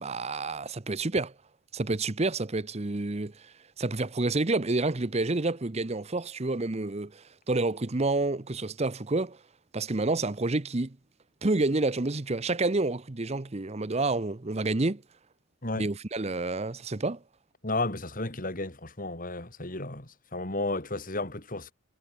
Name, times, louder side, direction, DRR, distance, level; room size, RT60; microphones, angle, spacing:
voice 1, 0.0-1.3 1.7-9.4 9.7-11.0 11.4-15.0 15.7-17.2, right 2 dB, 30° right, 0.8 m, -29 dB
voice 2, 17.6-21.7, left 2 dB, 40° left, 3.7 m, -33 dB
head